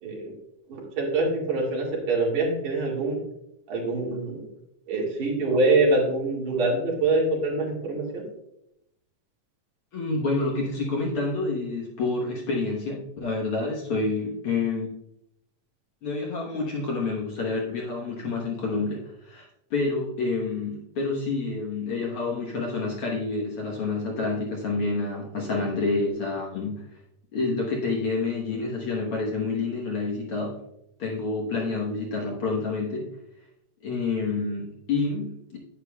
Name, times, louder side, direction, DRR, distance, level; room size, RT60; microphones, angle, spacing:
voice 1, 0.0-0.3 0.7-3.2 3.7-4.5 4.9-8.3, right 2 dB, 75° right, -3 dB, 3.6 m, -25 dB
voice 2, 9.9-14.9 16.0-26.8 27.3-30.6 31.0-33.1 33.8-35.6, left 3 dB, 55° left, -2 dB, 1.7 m, -28 dB
9.8 x 9.0 x 2.3 m, 0.80 s
omnidirectional pair, 3.6 m